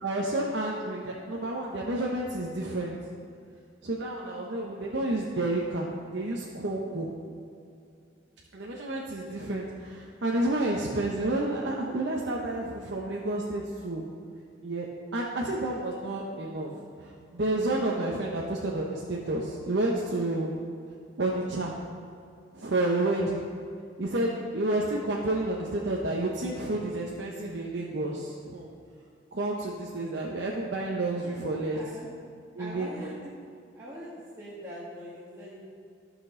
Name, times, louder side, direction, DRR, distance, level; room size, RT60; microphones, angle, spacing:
voice 1, 0.0-3.0 3.8-7.1 8.5-14.0 14.6-14.9 15.1-16.8 17.3-20.6 21.2-21.7 22.5-23.4 24.0-28.7 29.3-31.8 32.5-33.1, right 2 dB, 65° right, -3 dB, 0.9 m, -30 dB
voice 2, 4.2-4.6 6.9-7.1 8.3-8.4 31.2-32.1 32.6-33.3 33.7-34.1 34.4-35.6, equal, 15° right, -9 dB, 1.5 m, -44 dB
14.0 x 6.1 x 3.8 m, 2.4 s
head